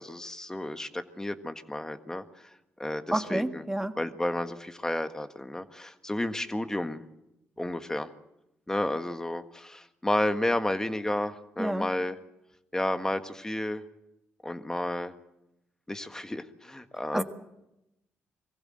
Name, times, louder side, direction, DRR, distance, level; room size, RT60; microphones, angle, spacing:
voice 1, 0.0-2.5 2.8-3.6 4.0-7.0 7.6-8.1 8.7-12.2 12.7-13.8 14.4-15.1 15.9-17.2, left 1 dB, 15° left, 9 dB, 1.7 m, -31 dB
voice 2, 3.1-4.0 11.6-11.9 17.1-17.2, right 1 dB, 10° right, 7 dB, 1.7 m, -29 dB
24.0 x 15.5 x 7.8 m, 0.90 s
supercardioid pair, 60°, 4 cm